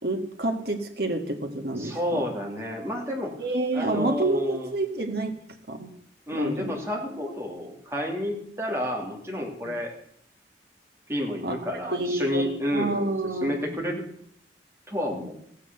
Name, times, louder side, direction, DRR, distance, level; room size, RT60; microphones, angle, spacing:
voice 1, 0.0-2.2 3.4-5.3 5.7-5.9 6.3-6.7 9.6-9.8 11.4-11.6 11.9-12.4 12.7-13.7, right 2 dB, 60° right, 4 dB, 1.9 m, -28 dB
voice 2, 1.7-3.4 3.7-4.7 6.3-9.9 11.1-13.1 13.4-14.1 14.9-15.4, left 1 dB, 15° right, -1 dB, 2.9 m, -30 dB
15.5 x 8.4 x 7.0 m, 0.66 s
head